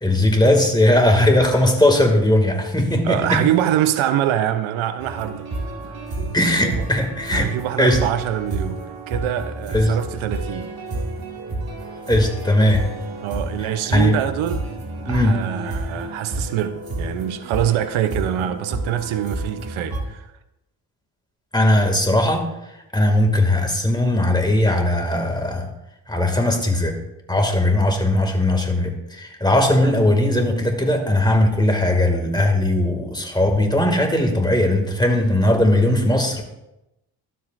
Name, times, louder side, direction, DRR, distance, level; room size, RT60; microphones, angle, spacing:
voice 1, 0.0-3.4 6.3-7.5 7.8-8.0 9.7-9.9 12.1-12.9 13.9-14.2 15.1-15.4 21.5-22.5 22.9-25.7 26.1-27.0 27.3-36.4, left 1 dB, 10° left, 2.2 m, -18 dB
voice 2, 3.0-5.5 6.5-6.8 7.3-10.7 13.2-14.7 15.1-20.3, right 11 dB, 75° right, 0.7 m, -24 dB
sound 1, 5.0-20.0, right 2 dB, 50° right, 2.1 m, -30 dB
12.5 x 7.8 x 2.6 m
supercardioid pair, 55°, 48 cm